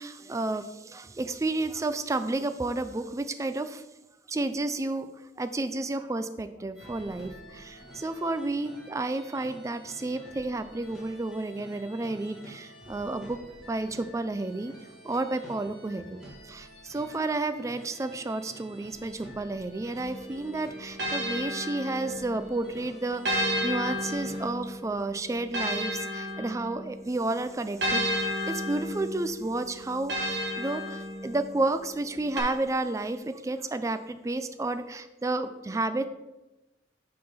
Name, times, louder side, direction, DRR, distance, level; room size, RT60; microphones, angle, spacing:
voice 1, 0.0-3.8 4.3-13.4 13.7-14.7 15.0-36.1, right 2 dB, 20° right, 10 dB, 0.3 m, -31 dB
sound 1, 6.7-24.5, equal, ahead, 1.8 m, -49 dB
sound 2, 20.0-22.5 23.3-27.0 27.8-31.6 32.4-32.5, equal, 70° right, 1.3 m, -32 dB
6.7 x 3.7 x 5.6 m, 1.0 s
head